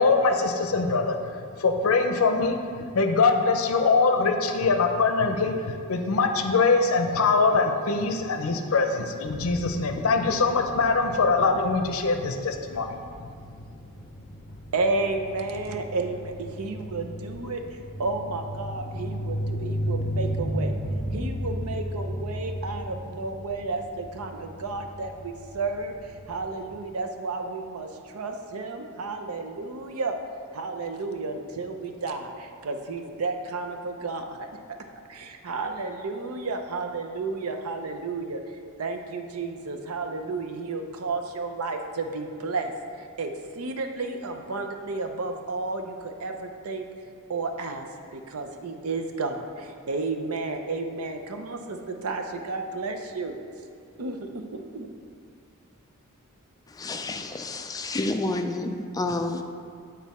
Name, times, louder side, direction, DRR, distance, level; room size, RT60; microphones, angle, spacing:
voice 1, 0.0-13.0, left 4 dB, 70° left, 6 dB, 0.6 m, -23 dB
sound 1, 9.2-26.7, equal, 40° left, 0.9 m, -35 dB
voice 2, 14.7-20.7 21.1-30.2 30.5-34.8 35.1-38.4 38.8-46.8 47.3-47.9 48.1-53.4 54.0-54.9, right 3 dB, 85° right, 5 dB, 0.6 m, -32 dB
voice 3, 56.7-59.4, left 2 dB, 15° left, 5 dB, 0.3 m, -29 dB
8.2 x 4.0 x 4.2 m, 2.2 s
head